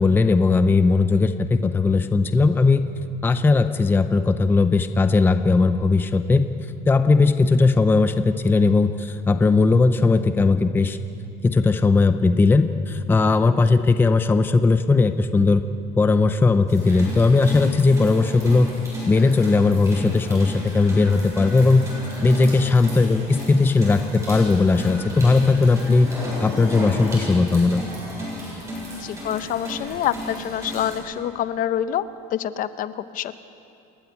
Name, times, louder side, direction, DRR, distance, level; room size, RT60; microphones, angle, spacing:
voice 1, 0.0-2.8 3.2-6.5 6.9-11.0 11.4-15.6 16.0-18.7 19.1-21.9 22.2-26.1 26.4-27.8, left 3 dB, 10° left, 9 dB, 0.6 m, -18 dB
sound 1, 16.7-31.0, equal, 15° right, 7.6 m, -34 dB
voice 2, 28.9-33.4, left 10 dB, 45° left, 13 dB, 0.8 m, -27 dB
28.5 x 12.5 x 9.8 m, 2.6 s
cardioid pair, 155°, 19 cm